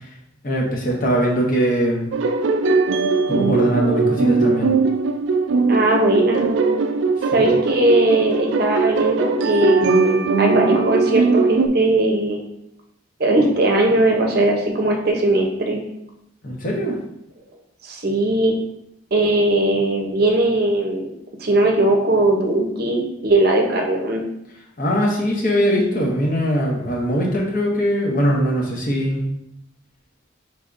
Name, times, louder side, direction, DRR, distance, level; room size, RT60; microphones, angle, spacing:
voice 1, 0.4-2.1 3.3-4.7 7.3-7.4 16.4-17.0 24.8-29.3, equal, 45° left, -2 dB, 0.9 m, -21 dB
sound 1, 2.1-11.7, right 4 dB, 70° right, 0.3 m, -19 dB
voice 2, 5.7-6.5 7.3-12.4 13.2-15.8 17.8-18.5 19.1-21.1 21.4-24.2, right 2 dB, 50° right, 1 dB, 0.7 m, -19 dB
5.0 x 3.4 x 2.5 m, 0.80 s
head